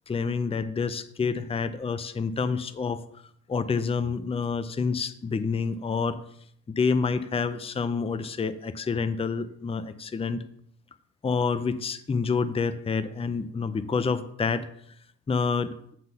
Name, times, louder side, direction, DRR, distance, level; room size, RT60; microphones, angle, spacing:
voice 1, 0.1-3.0 3.5-6.2 6.7-10.4 11.2-14.7 15.3-15.7, left 5 dB, 20° left, 12 dB, 0.5 m, -28 dB
9.3 x 4.0 x 6.8 m, 0.69 s
cardioid pair, 100°, 32 cm